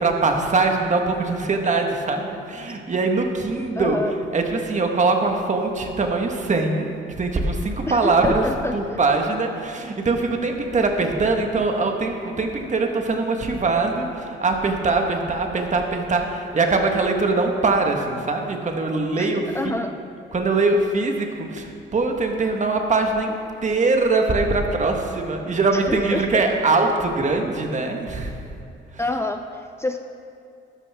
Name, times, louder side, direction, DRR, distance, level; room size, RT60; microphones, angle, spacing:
voice 1, 0.0-4.0 4.3-8.4 8.7-19.4 20.3-23.4 23.6-28.3, right 3 dB, 35° right, 3 dB, 1.6 m, -22 dB
voice 2, 3.7-4.1 7.9-9.0 19.2-19.9 25.7-26.4 29.0-30.0, left 2 dB, 15° left, 5 dB, 0.5 m, -27 dB
12.5 x 12.0 x 3.6 m, 2.5 s
cardioid pair, 90°, 20 cm